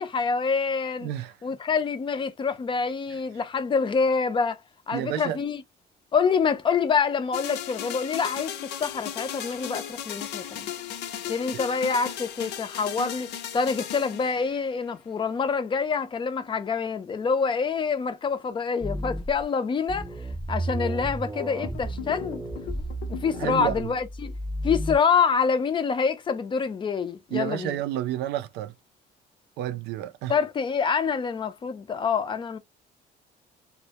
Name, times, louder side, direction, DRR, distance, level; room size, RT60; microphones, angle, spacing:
voice 1, 0.0-1.1 1.4-4.6 4.9-5.6 6.1-10.7 11.3-20.1 20.5-22.4 23.1-24.3 24.6-27.8 30.3-32.6, left 5 dB, 30° left, 0.4 m, -26 dB
voice 2, 1.0-1.3 4.9-5.4 23.3-23.9 27.3-28.7 29.6-30.4, right 12 dB, 80° right, 0.4 m, -30 dB
sound 1, 7.3-14.9 21.4-23.5, left 10 dB, 80° left, 0.5 m, -36 dB
sound 2, 18.8-19.4 19.9-25.0, right 1 dB, 5° right, 0.8 m, -33 dB
2.1 x 2.1 x 2.7 m
cardioid pair, 110°, 17 cm